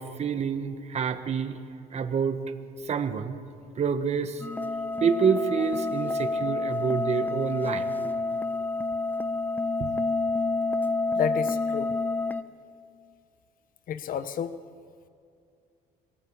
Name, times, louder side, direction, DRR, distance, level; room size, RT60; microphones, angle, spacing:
voice 1, 0.0-1.6 1.9-2.4 2.8-3.4 3.8-4.4 5.0-8.1 9.8-9.9, right 6 dB, 40° right, 8 dB, 1.4 m, -27 dB
sound 1, 4.4-12.4, left 3 dB, 10° left, 0.8 m, -28 dB
voice 2, 11.1-12.0 13.9-14.6, left 8 dB, 55° left, 12 dB, 1.0 m, -31 dB
26.0 x 17.5 x 8.7 m, 2.4 s
cardioid pair, 110°, 17 cm